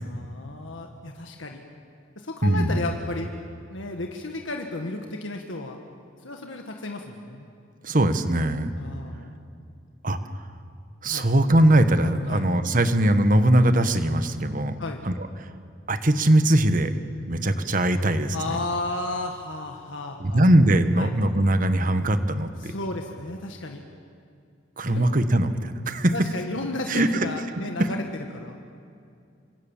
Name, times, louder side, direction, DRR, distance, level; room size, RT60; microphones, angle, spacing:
voice 1, 0.0-1.6 2.1-3.3 3.7-5.8 6.2-7.5 8.8-9.4 11.1-11.3 12.3-12.4 14.8-15.0 18.3-20.5 21.0-21.1 22.6-23.8 24.9-25.1 26.1-28.0 28.3-28.6, left 2 dB, 90° left, 3 dB, 1.8 m, -33 dB
voice 2, 2.4-2.9 7.8-8.7 10.0-10.2 11.0-14.7 15.0-15.5 15.9-16.9 17.3-18.6 20.2-22.7 24.8-26.1 26.9-27.3 27.8-27.9, right 1 dB, 45° right, 10 dB, 1.4 m, -21 dB
26.0 x 25.5 x 7.3 m, 2.4 s
head